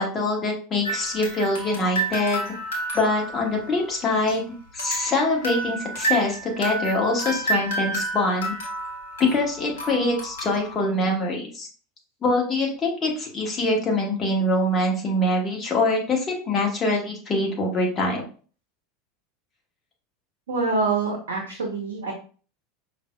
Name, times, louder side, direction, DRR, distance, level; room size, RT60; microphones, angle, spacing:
voice 1, 0.0-2.4 2.9-4.4 4.7-8.5 9.3-11.7 12.2-18.2, left 2 dB, 30° left, 0 dB, 1.2 m, -24 dB
sound 1, 0.8-4.4 4.8-10.8, right 2 dB, 70° left, 0.9 m, -30 dB
voice 2, 20.5-22.1, right 3 dB, 65° right, 1 dB, 0.7 m, -25 dB
5.1 x 2.5 x 2.2 m, 0.39 s
figure-of-eight pair, 80°, 0 cm